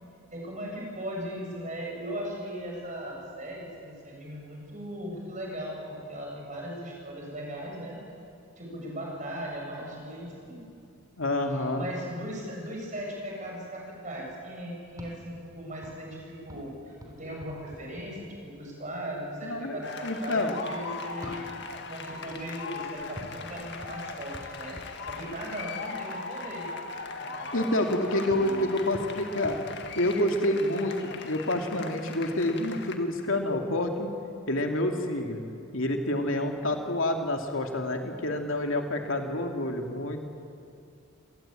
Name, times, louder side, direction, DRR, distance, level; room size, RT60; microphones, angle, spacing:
voice 1, 0.3-8.0 8.6-10.6 11.5-16.9 17.2-21.4 21.9-26.7 27.2-27.7 28.3-28.7, equal, 35° right, -1 dB, 7.4 m, -38 dB
voice 2, 11.2-11.9 19.4-20.5 27.5-29.6 30.0-34.1 34.5-35.4 35.7-40.2, left 1 dB, 65° left, 3 dB, 2.5 m, -28 dB
sound 1, 14.9-18.7 21.1-26.0 28.3-30.7, equal, 15° right, 3.4 m, -48 dB
sound 2, 19.8-33.0, left 4 dB, 50° left, 1.8 m, -39 dB
26.5 x 19.0 x 9.1 m, 2.5 s
head